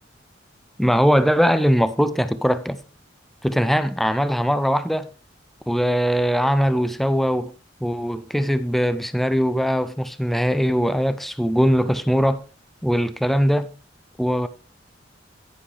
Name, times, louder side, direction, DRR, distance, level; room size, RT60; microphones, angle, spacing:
voice 1, 0.8-2.8 3.4-5.1 5.7-7.5 7.8-12.4 12.8-13.7 14.2-14.5, equal, ahead, 0.5 m, -21 dB
10.5 x 9.9 x 3.3 m
head